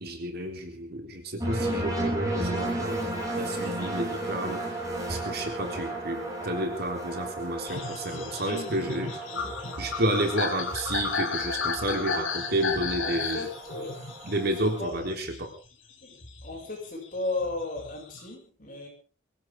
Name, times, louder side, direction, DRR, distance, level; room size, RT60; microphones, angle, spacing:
voice 1, 0.0-3.1 3.4-4.6 5.1-9.1 9.8-13.4 14.2-15.5, right 1 dB, 55° right, 4 dB, 3.7 m, -31 dB
sound 1, 1.4-14.8, right 1 dB, 15° right, 7.3 m, -34 dB
sound 2, 7.7-15.7 16.1-18.3, left 4 dB, 85° left, 3.1 m, -34 dB
voice 2, 8.4-8.9 9.3-9.5 13.0-14.0 14.8-15.1 16.0-18.9, left 2 dB, 45° left, 0 dB, 6.8 m, -35 dB
23.5 x 16.0 x 3.8 m, 0.37 s
head